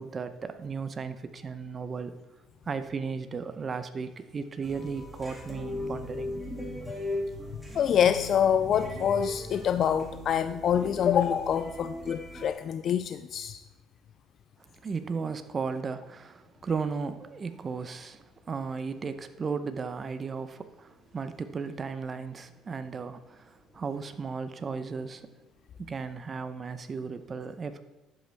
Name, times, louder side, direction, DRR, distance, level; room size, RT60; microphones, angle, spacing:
voice 1, 0.0-2.1 2.7-6.4 14.8-25.3 25.8-27.8, right 5 dB, 35° right, 11 dB, 0.8 m, -35 dB
sound 1, 4.6-12.5, left 1 dB, 5° right, 2.6 m, -38 dB
voice 2, 7.8-13.6, left 8 dB, 55° left, 11 dB, 0.3 m, -26 dB
11.0 x 7.7 x 3.5 m, 1.1 s
supercardioid pair, 90°, 0 cm